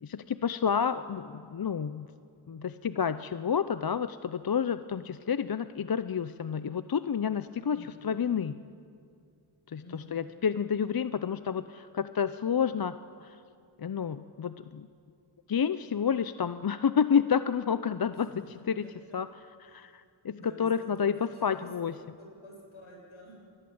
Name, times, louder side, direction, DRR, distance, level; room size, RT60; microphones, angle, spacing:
voice 1, 0.0-2.1 2.5-8.5 9.7-13.0 13.2-13.4 13.8-14.9 15.5-18.3 18.7-18.9 19.1-19.3 19.6-21.1 21.4-21.9, left 7 dB, 45° left, 13 dB, 0.6 m, -29 dB
voice 2, 7.7-8.0 9.8-10.2 18.2-18.5 18.8-19.2 19.7-19.9 20.3-21.7 22.4-23.4, left 1 dB, 75° left, -2 dB, 7.6 m, -49 dB
26.5 x 20.0 x 7.9 m, 2.4 s
wide cardioid pair, 90°, 50 cm